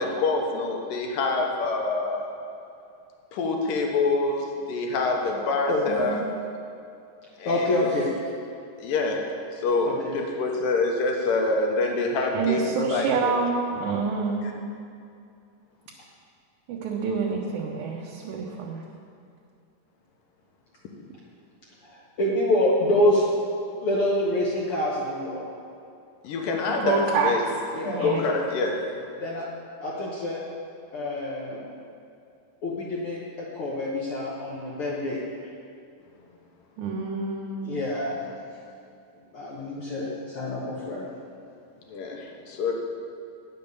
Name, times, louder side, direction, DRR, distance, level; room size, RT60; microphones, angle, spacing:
voice 1, 0.0-2.3 3.3-6.2 7.4-7.9 8.8-9.2 9.5-13.3 14.4-14.5 26.2-27.4 28.0-28.8 41.9-42.7, left 3 dB, 85° left, 1 dB, 2.8 m, -26 dB
voice 2, 7.4-8.1 9.8-10.1 21.8-23.4 23.8-25.5 27.7-28.6 29.2-29.5 29.8-30.4 30.9-31.7 32.6-35.2 37.6-38.3 39.3-41.1, left 1 dB, 65° left, -4 dB, 1.4 m, -26 dB
voice 3, 12.3-14.4 16.7-18.8 26.8-27.3 27.9-28.2 36.8-37.7, right 5 dB, 75° right, -2 dB, 2.1 m, -27 dB
9.8 x 6.9 x 6.8 m, 2.5 s
omnidirectional pair, 3.9 m